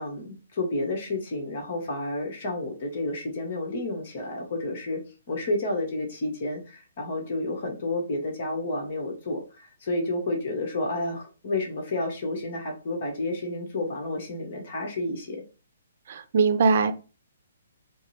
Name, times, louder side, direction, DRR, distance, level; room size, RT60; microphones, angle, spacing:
voice 1, 0.0-5.0 5.3-15.4, left 2 dB, 50° left, 1.1 m, -30 dB
voice 2, 16.1-16.9, right 5 dB, 55° right, 0.6 m, -21 dB
4.9 x 2.0 x 3.1 m
figure-of-eight pair, 130°, 0 cm